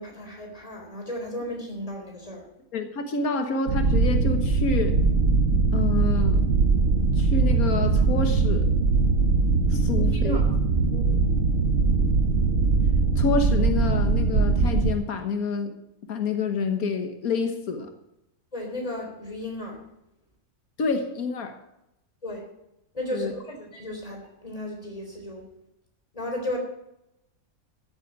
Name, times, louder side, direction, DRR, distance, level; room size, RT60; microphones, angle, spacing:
voice 1, 0.0-2.4 9.9-10.5 18.5-19.8 22.2-22.4 22.9-25.4 26.1-26.6, left 1 dB, 25° left, 1 dB, 3.7 m, -34 dB
voice 2, 2.7-5.0 5.7-6.4 7.2-8.7 9.7-10.4 10.9-11.0 13.2-15.7 16.1-17.9 20.8-21.6 23.1-23.3, left 4 dB, 90° left, 6 dB, 1.8 m, -28 dB
sound 1, 3.7-14.9, right 4 dB, 60° right, 1.5 m, -21 dB
14.0 x 8.3 x 7.4 m, 0.86 s
omnidirectional pair, 1.5 m